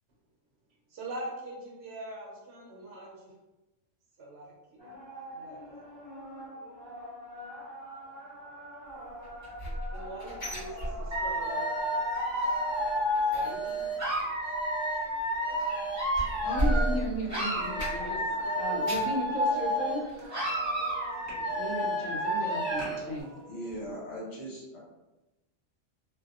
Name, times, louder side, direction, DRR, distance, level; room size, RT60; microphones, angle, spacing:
voice 1, 0.9-3.3 4.2-4.9 5.3-5.8 9.9-11.6 13.2-14.0, right 2 dB, 65° right, -2 dB, 0.8 m, -43 dB
sound 1, 4.8-23.9, left 1 dB, 40° left, 0.4 m, -46 dB
sound 2, 9.2-11.6 11.8-12.2 12.5-18.3 18.6-19.2 19.7-19.8 20.2-20.3, right 1 dB, 20° left, 1.0 m, -35 dB
Dog / Alarm, 11.1-17.0 17.3-20.0 20.3-23.0, equal, 15° right, 0.7 m, -30 dB
voice 2, 16.4-18.2 18.6-20.0 21.5-23.3, left 1 dB, 80° left, -2 dB, 1.0 m, -35 dB
voice 3, 23.5-24.8, equal, 60° left, -5 dB, 1.0 m, -39 dB
2.7 x 2.0 x 2.3 m, 1.0 s
omnidirectional pair, 1.3 m